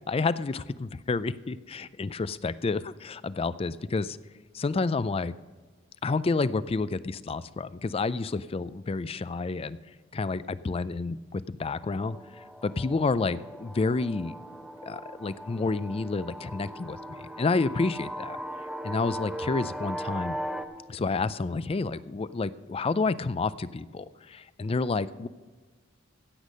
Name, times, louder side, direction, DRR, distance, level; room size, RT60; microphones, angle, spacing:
voice 1, 0.1-4.2 4.5-5.3 6.0-9.8 10.1-12.2 12.6-14.3 14.8-18.4 18.8-20.4 20.9-25.3, left 3 dB, 30° left, 16 dB, 0.4 m, -29 dB
sound 1, 11.6-20.6, right 1 dB, ahead, 0.7 m, -39 dB
16.0 x 8.3 x 5.2 m, 1.3 s
head